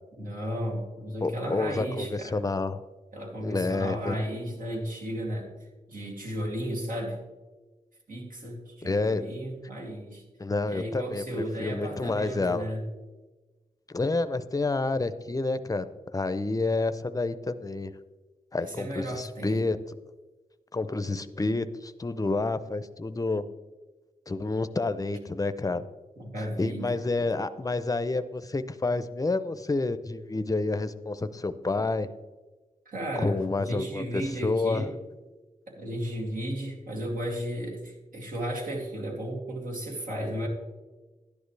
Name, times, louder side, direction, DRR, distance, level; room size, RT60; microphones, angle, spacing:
voice 1, 0.2-2.4 3.1-5.5 5.9-7.2 8.1-10.2 10.6-12.9 18.5-19.7 26.2-27.3 31.8-31.9 32.9-34.9 35.7-40.5, equal, 70° right, -2 dB, 2.6 m, -34 dB
voice 2, 1.2-2.8 3.4-4.2 8.8-9.2 10.4-12.7 13.9-15.9 16.1-17.9 18.5-19.8 20.7-23.5 24.3-25.8 26.6-32.1 33.2-34.9, left 3 dB, 25° left, 12 dB, 0.6 m, -29 dB
11.5 x 10.5 x 3.3 m, 1.2 s
wide cardioid pair, 85°, 15 cm